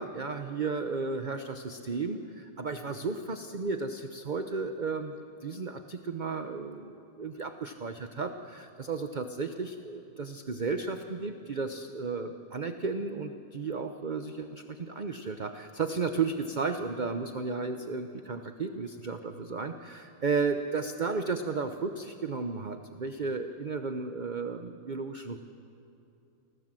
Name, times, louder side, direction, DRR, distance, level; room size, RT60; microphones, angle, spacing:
voice 1, 0.0-25.4, right 4 dB, 40° right, 7 dB, 0.7 m, -34 dB
29.5 x 20.5 x 7.6 m, 2.7 s
omnidirectional pair, 1.9 m